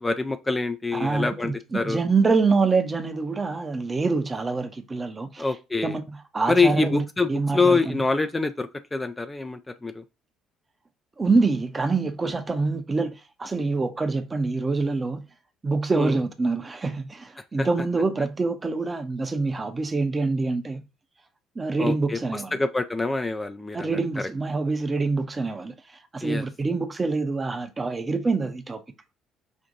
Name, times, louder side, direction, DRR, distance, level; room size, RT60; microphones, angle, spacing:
voice 1, 0.0-2.0 5.4-6.0 6.5-10.0 16.0-16.2 17.6-17.7 21.8-24.0 26.2-26.4, left 3 dB, 20° left, 0.5 m, -25 dB
voice 2, 0.9-5.5 5.8-6.0 6.3-8.0 11.2-15.2 15.6-20.8 21.5-22.6 23.7-28.8, right 3 dB, 25° right, 0.8 m, -25 dB
5.3 x 2.5 x 4.0 m
figure-of-eight pair, 50°, 0 cm